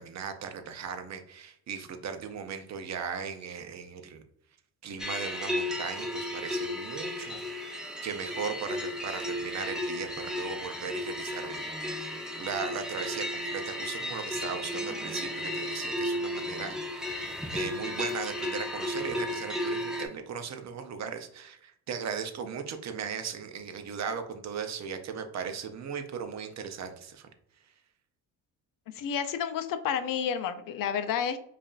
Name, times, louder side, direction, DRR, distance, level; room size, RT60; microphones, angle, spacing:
voice 1, 0.0-4.2 4.8-27.3, right 6 dB, 45° right, 7 dB, 0.6 m, -38 dB
sound 1, 5.0-20.1, left 1 dB, ahead, 0.6 m, -34 dB
voice 2, 28.9-31.4, left 8 dB, 55° left, 10 dB, 0.5 m, -30 dB
5.1 x 2.5 x 2.4 m, 0.70 s
cardioid pair, 95°, 39 cm